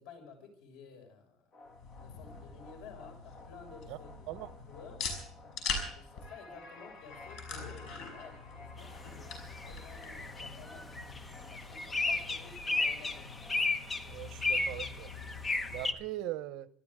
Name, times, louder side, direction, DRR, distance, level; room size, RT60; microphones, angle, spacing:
voice 1, 0.0-1.4 2.0-5.0 5.9-10.9 11.5-13.3, left 5 dB, 85° left, 6.2 m, -53 dB
sound 1, 1.5-13.8, left 3 dB, 40° left, 2.6 m, -54 dB
sound 2, 1.7-15.9, left 4 dB, 60° left, 5.6 m, -44 dB
sound 3, 8.8-8.9 9.2-15.9, left 3 dB, 15° left, 1.0 m, -34 dB
voice 2, 14.0-15.1 15.7-16.7, right 15 dB, 70° right, 0.9 m, -40 dB
25.5 x 13.0 x 3.7 m
cardioid pair, 155°, 0 cm